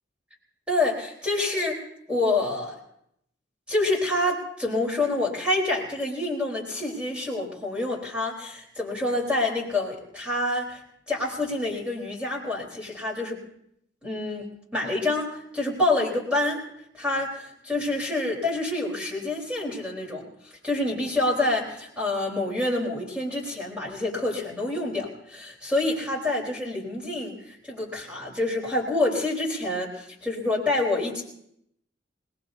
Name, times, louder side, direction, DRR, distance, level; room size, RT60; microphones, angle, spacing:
voice 1, 0.7-1.8 2.1-2.8 3.7-10.8 11.1-13.4 14.0-16.6 16.9-20.2 20.6-31.2, left 2 dB, 5° right, -2 dB, 3.9 m, -27 dB
27.5 x 19.5 x 2.7 m, 0.74 s
head